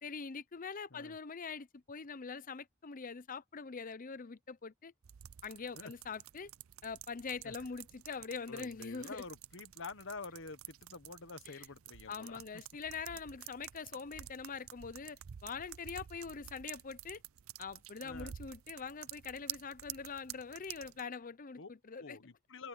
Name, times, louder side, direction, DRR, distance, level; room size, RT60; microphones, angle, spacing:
voice 1, 0.0-4.9 5.4-6.5 6.8-9.2 11.5-11.7 12.1-17.2 17.6-22.2, left 5 dB, 40° left, 0.7 m, -44 dB
sound 1, 5.0-21.0, right 12 dB, 80° right, 0.5 m, -50 dB
voice 2, 8.5-12.4 18.0-18.3 21.6-21.7 22.0-22.7, left 4 dB, 65° left, 1.3 m, -48 dB
open air
head